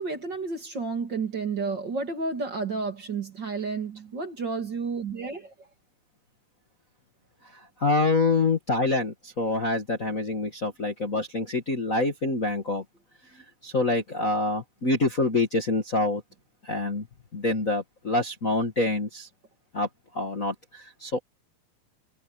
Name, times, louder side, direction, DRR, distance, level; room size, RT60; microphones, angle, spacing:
voice 1, 0.0-5.5, right 4 dB, 40° right, 2.6 m, -31 dB
voice 2, 7.5-12.8 13.3-16.2 16.6-17.1 17.3-19.3 19.7-19.9 20.1-21.2, left 2 dB, 30° left, 1.7 m, -26 dB
omnidirectional pair, 3.6 m